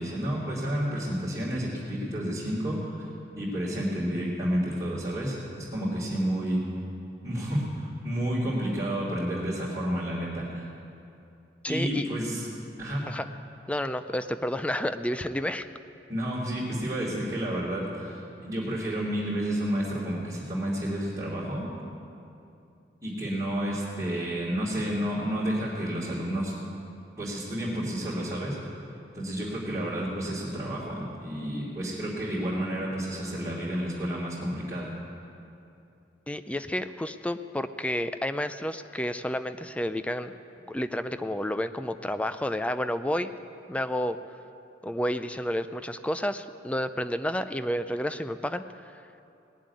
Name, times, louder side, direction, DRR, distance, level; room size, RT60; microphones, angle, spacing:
voice 1, 0.0-3.1 3.4-6.6 7.2-10.7 11.7-12.5 12.8-13.0 16.1-21.7 23.0-26.5 27.2-28.6 29.1-34.9, equal, 20° right, -11 dB, 3.0 m, -30 dB
voice 2, 11.6-12.1 13.1-13.3 13.7-15.7 36.3-40.3 40.7-43.3 43.7-44.2 44.8-48.6, equal, 5° left, 10 dB, 0.4 m, -30 dB
19.0 x 7.5 x 9.7 m, 2.7 s
head